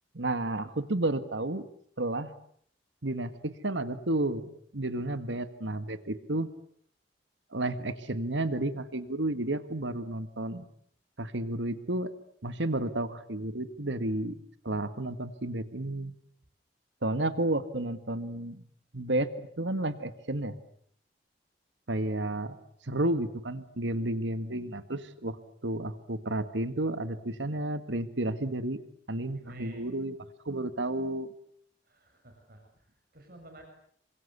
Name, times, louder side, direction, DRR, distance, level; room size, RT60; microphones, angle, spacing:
voice 1, 0.1-1.6 2.0-2.3 3.0-6.5 7.5-10.6 11.2-12.1 12.4-16.1 17.0-18.6 18.9-20.5 21.9-22.6 22.9-25.4 25.6-28.8 29.1-30.2 30.5-31.3, right 1 dB, 90° right, 12 dB, 1.8 m, -32 dB
voice 2, 29.3-29.9 31.8-33.6, right 2 dB, 55° right, 3 dB, 6.8 m, -52 dB
28.0 x 25.5 x 8.2 m, 0.63 s
head